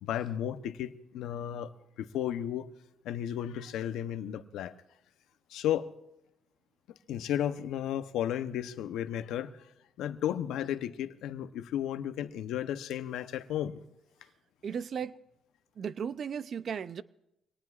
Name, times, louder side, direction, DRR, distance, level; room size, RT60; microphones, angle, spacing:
voice 1, 0.0-1.7 2.0-2.7 3.0-4.7 5.5-5.9 7.1-9.7 10.0-13.8, left 10 dB, 85° left, 0.8 m, -34 dB
voice 2, 14.6-15.1 15.8-17.0, right 7 dB, 55° right, 0.5 m, -35 dB
25.5 x 18.5 x 2.5 m
cardioid pair, 90°, 0 cm